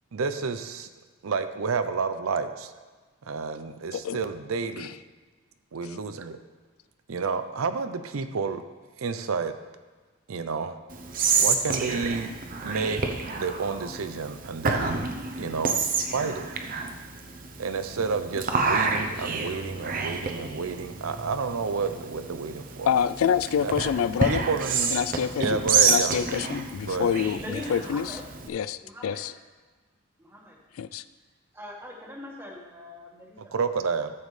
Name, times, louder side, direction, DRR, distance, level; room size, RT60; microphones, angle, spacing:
voice 1, 0.1-0.9 1.2-2.7 3.3-4.9 5.7-6.4 7.1-8.6 9.0-9.5 10.3-10.8 11.4-13.0 13.4-15.1 15.4-16.5 17.6-22.9 23.6-23.7 24.3-24.9 25.4-26.2 26.8-27.1 33.5-34.1, right 4 dB, 80° right, 9 dB, 0.6 m, -30 dB
Whispering, 10.9-28.5, right 5 dB, 40° right, 0.7 m, -29 dB
voice 2, 22.9-24.5 24.9-25.6 25.9-28.2 28.5-29.3 30.8-31.0, left 8 dB, 80° left, 15 dB, 0.3 m, -27 dB
voice 3, 27.3-28.2 28.8-29.2 30.2-30.6 31.5-33.5, left 1 dB, 10° right, -2 dB, 1.4 m, -41 dB
13.0 x 7.2 x 3.3 m, 1.4 s
head